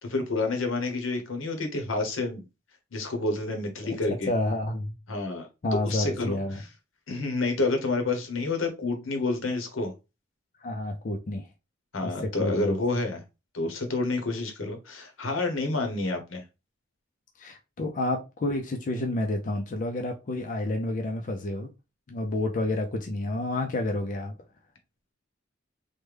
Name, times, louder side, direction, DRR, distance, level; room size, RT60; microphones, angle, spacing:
voice 1, 0.0-2.4 2.9-4.3 5.1-5.5 5.8-6.7 7.1-9.9 11.9-13.2 13.5-16.4, left 3 dB, 85° left, 0.9 m, -29 dB
voice 2, 4.3-4.9 5.6-6.6 10.6-11.5 12.0-12.8 17.4-21.7 22.1-24.3, left 1 dB, 40° left, 0.4 m, -29 dB
3.2 x 2.1 x 3.3 m
head